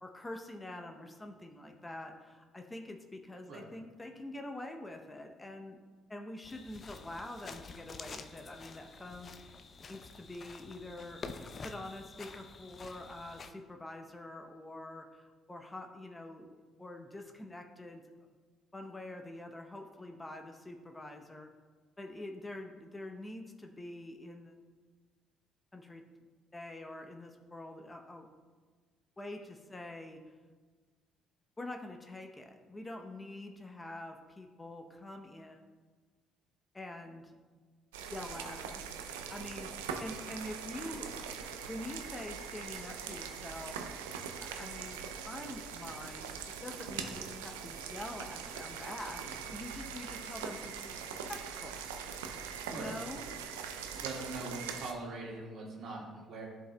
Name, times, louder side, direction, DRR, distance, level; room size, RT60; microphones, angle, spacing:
voice 1, 0.0-5.8 6.1-9.6 9.9-18.0 18.7-21.5 22.0-24.5 25.7-26.0 26.5-28.3 29.2-30.4 31.6-35.6 36.7-37.3 38.1-38.8 39.3-44.0 44.4-50.9 51.3-51.9 52.7-53.2, left 1 dB, 20° left, 4 dB, 0.8 m, -45 dB
sound 1, 6.4-13.5, left 4 dB, 45° left, 0.5 m, -48 dB
sound 2, 37.9-54.9, right 7 dB, 90° right, 0.4 m, -42 dB
voice 2, 54.0-56.5, right 2 dB, 60° right, -2 dB, 1.8 m, -42 dB
11.5 x 4.8 x 2.3 m, 1.4 s
hypercardioid pair, 60°, 0 cm